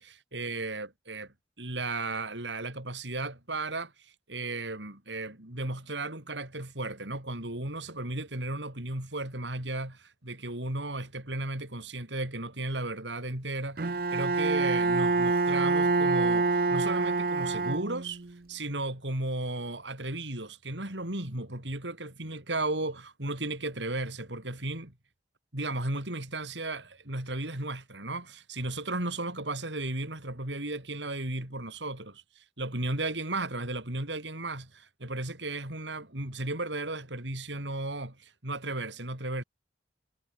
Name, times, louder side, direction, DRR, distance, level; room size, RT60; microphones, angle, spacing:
voice 1, 0.0-18.2 18.5-24.9 25.5-39.4, right 2 dB, 90° right, 5.7 m, -35 dB
Bowed string instrument, 13.8-18.3, right 3 dB, 55° right, 0.8 m, -26 dB
head